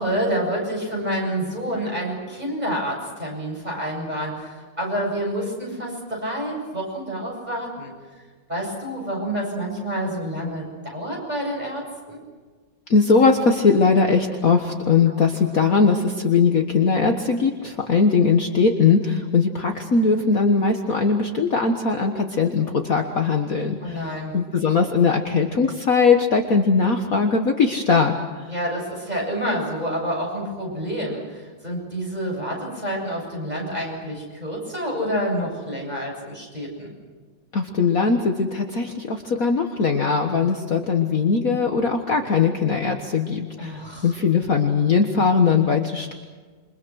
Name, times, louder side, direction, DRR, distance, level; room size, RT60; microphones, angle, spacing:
voice 1, 0.0-7.9 8.5-10.7 10.9-12.2 15.1-15.2 23.8-24.3 28.5-36.9 43.6-44.1, equal, 20° right, -2 dB, 8.3 m, -28 dB
voice 2, 12.9-28.5 37.5-46.1, left 5 dB, 45° left, 4 dB, 1.7 m, -20 dB
28.0 x 25.0 x 6.4 m, 1.5 s
omnidirectional pair, 2.2 m